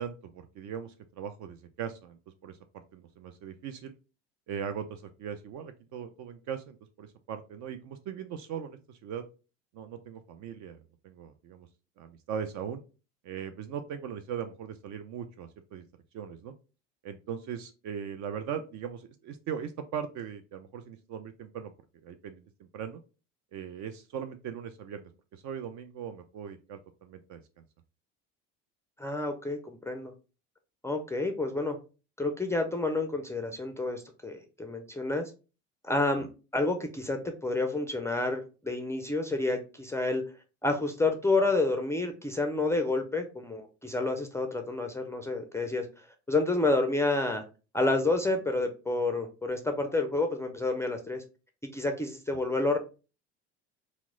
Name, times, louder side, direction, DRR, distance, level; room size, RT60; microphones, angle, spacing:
voice 1, 0.0-2.2 2.4-3.9 4.5-9.2 9.7-11.7 12.0-12.8 13.2-15.8 16.1-16.5 17.0-21.7 22.0-23.0 23.5-27.4 36.2-36.3, right 8 dB, 55° right, 8 dB, 0.4 m, -39 dB
voice 2, 29.0-30.1 30.8-31.8 32.2-35.3 35.8-36.3 36.5-40.2 40.6-47.4 47.7-51.2 51.6-52.8, left 2 dB, 10° left, 4 dB, 0.4 m, -29 dB
2.9 x 2.1 x 3.6 m, 0.33 s
hypercardioid pair, 70°, 36 cm